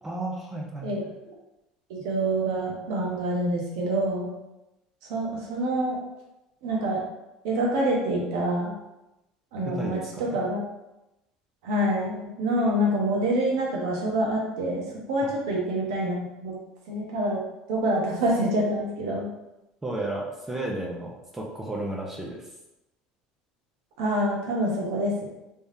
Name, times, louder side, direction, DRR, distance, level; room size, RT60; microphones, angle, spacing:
voice 1, 0.0-0.9 9.7-10.4 15.2-15.3 19.8-22.5, right 1 dB, 15° right, -2 dB, 0.8 m, -33 dB
voice 2, 1.9-4.3 5.1-6.0 6.6-7.0 7.4-8.7 9.5-10.0 10.3-10.6 11.6-14.8 15.1-16.2 16.4-16.5 16.9-17.4 17.7-19.3 24.0-25.3, right 1 dB, 85° right, -2 dB, 1.2 m, -26 dB
3.5 x 3.4 x 2.8 m, 0.95 s
supercardioid pair, 115°, 3 cm